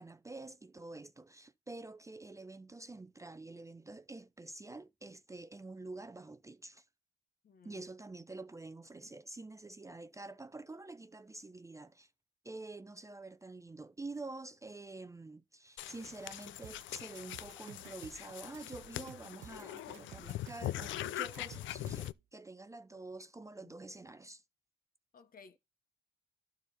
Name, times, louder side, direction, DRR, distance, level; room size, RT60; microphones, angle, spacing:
voice 1, 0.0-6.8 7.6-12.1 12.4-24.4, right 2 dB, 15° right, 0.5 m, -48 dB
voice 2, 7.4-7.9 22.9-23.0 23.6-23.8 25.1-25.6, left 5 dB, 45° left, 1.0 m, -58 dB
sound 1, 15.8-22.1, left 14 dB, 75° left, 0.4 m, -42 dB
sound 2, 16.6-22.2, right 12 dB, 70° right, 0.6 m, -54 dB
12.0 x 4.1 x 4.1 m
cardioid pair, 90°, 20 cm